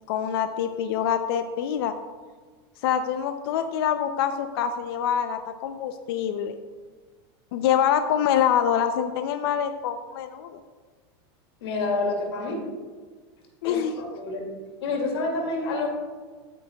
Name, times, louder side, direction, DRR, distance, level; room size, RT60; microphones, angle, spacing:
voice 1, 0.1-1.9 2.8-6.5 7.5-10.6 13.6-13.9, left 9 dB, 70° left, 8 dB, 0.6 m, -25 dB
voice 2, 11.6-12.6 13.6-14.5 14.8-15.9, left 3 dB, 85° left, 1 dB, 2.4 m, -28 dB
13.0 x 9.2 x 2.3 m, 1.5 s
supercardioid pair, 135°, 13 cm